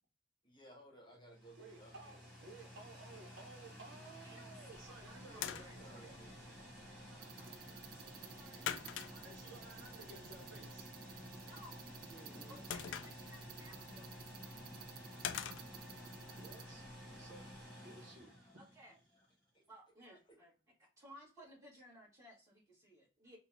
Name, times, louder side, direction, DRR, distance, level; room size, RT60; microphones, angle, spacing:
voice 1, 0.4-2.2 5.3-6.6 12.1-12.6 13.9-14.0 14.6-14.7 16.8-16.9 18.4-18.5 19.2-19.3 19.5-19.6 20.3-20.4, right 1 dB, 25° left, 0 dB, 1.0 m, -60 dB
sound 1, 1.1-19.2, equal, 5° left, 1.8 m, -53 dB
voice 2, 1.6-2.1 2.4-6.1 9.2-10.9 11.3-11.4 16.4-16.8 17.2-17.5 17.8-18.3, right 3 dB, 75° right, 1 dB, 0.9 m, -56 dB
voice 3, 4.2-8.7 9.1-9.2 11.4-11.8 12.5-14.1 18.5-19.0 19.7-20.5 21.0-23.4, equal, 15° right, -5 dB, 1.8 m, -60 dB
sound 2, 4.6-17.7, left 9 dB, 75° left, 0.3 m, -49 dB
sound 3, 7.2-16.7, right 9 dB, 50° right, 0.3 m, -56 dB
4.1 x 2.3 x 2.7 m, 0.35 s
head